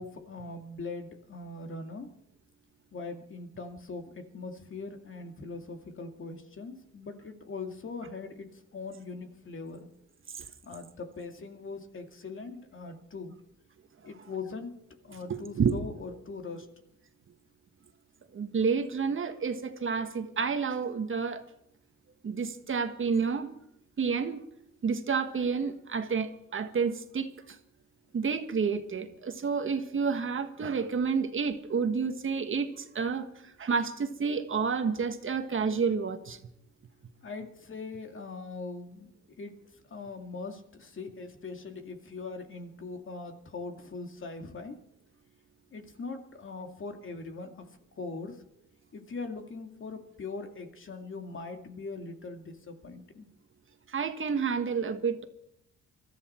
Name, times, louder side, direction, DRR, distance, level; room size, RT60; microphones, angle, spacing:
voice 1, 0.0-2.1 2.9-9.9 10.6-13.3 14.0-14.7 15.0-16.7 37.2-39.1 39.4-39.5 39.9-44.8 45.7-48.4 48.9-53.3, left 3 dB, 40° left, 5 dB, 2.3 m, -41 dB
voice 2, 15.3-15.8 18.3-21.4 22.2-23.5 24.0-24.4 24.8-27.6 28.1-36.4 53.9-55.2, right 5 dB, 40° right, 8 dB, 1.5 m, -30 dB
22.5 x 13.5 x 4.5 m, 0.78 s
cardioid pair, 90°, 30 cm